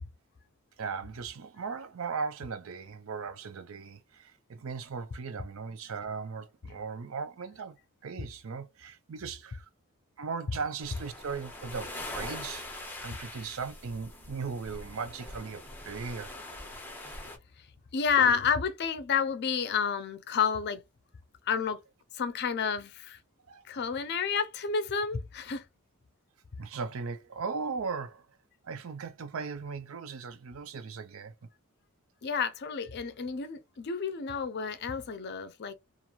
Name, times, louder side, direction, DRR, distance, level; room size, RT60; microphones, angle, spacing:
voice 1, 0.8-7.8 8.0-9.7 10.2-12.7 13.0-16.3 23.5-23.6 26.6-28.3 28.6-31.3, right 5 dB, 70° right, 0.5 m, -38 dB
sound 1, 10.8-17.4, left 1 dB, 10° left, 0.7 m, -43 dB
voice 2, 17.9-20.8 21.5-21.8 22.2-23.2 23.7-25.6 32.2-35.7, left 6 dB, 50° left, 0.5 m, -30 dB
3.0 x 2.5 x 2.4 m
head